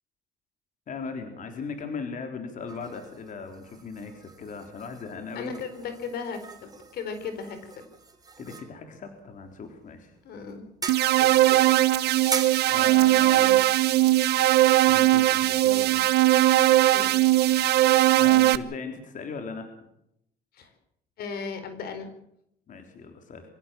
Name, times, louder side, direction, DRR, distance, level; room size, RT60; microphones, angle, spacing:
voice 1, 0.9-5.5 8.4-10.2 12.7-13.6 14.9-16.1 18.2-19.7 22.7-23.4, left 5 dB, 50° left, 5 dB, 3.9 m, -38 dB
sound 1, 2.7-15.7, right 4 dB, 20° right, 4.0 m, -42 dB
voice 2, 5.3-7.9 10.2-10.6 11.2-11.8 12.1-12.2 13.4-13.5 16.9-17.6 20.5-20.7 21.2-22.1, left 5 dB, 65° left, 9 dB, 4.6 m, -37 dB
sound 2, 10.9-18.6, right 15 dB, 75° right, 1.1 m, -20 dB
25.0 x 16.0 x 7.7 m, 0.77 s
cardioid pair, 110°, 17 cm